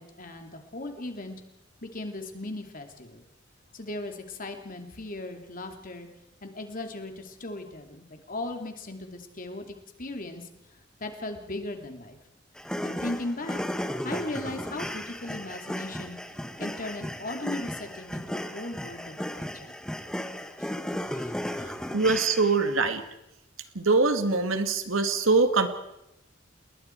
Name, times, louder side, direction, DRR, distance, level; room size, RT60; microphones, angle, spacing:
voice 1, 0.0-1.4 1.8-3.2 3.7-6.1 6.4-9.7 10.0-10.5 11.0-12.2 12.8-13.6 14.0-16.2 16.6-19.7 20.6-20.7 21.1-21.3, left 2 dB, 45° left, 5 dB, 2.8 m, -37 dB
sound 1, 12.6-22.7, equal, 5° left, 1.2 m, -35 dB
voice 2, 21.9-23.0 23.8-25.7, right 3 dB, 85° right, 8 dB, 2.0 m, -23 dB
29.5 x 20.5 x 4.6 m, 0.88 s
head